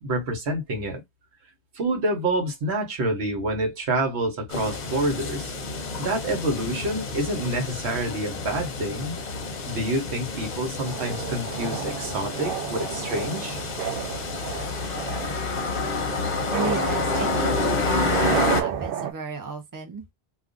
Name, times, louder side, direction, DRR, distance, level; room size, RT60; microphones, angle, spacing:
voice 1, 0.0-1.0 1.7-5.4 6.0-9.2 9.7-13.6, right 1 dB, 80° right, 1.2 m, -27 dB
sound 1, 4.5-18.6, left 3 dB, 50° left, 0.7 m, -29 dB
sound 2, 10.8-19.1, right 10 dB, 65° right, 0.7 m, -32 dB
voice 2, 16.5-20.0, right 3 dB, 25° right, 0.6 m, -33 dB
2.4 x 2.3 x 3.6 m
omnidirectional pair, 1.1 m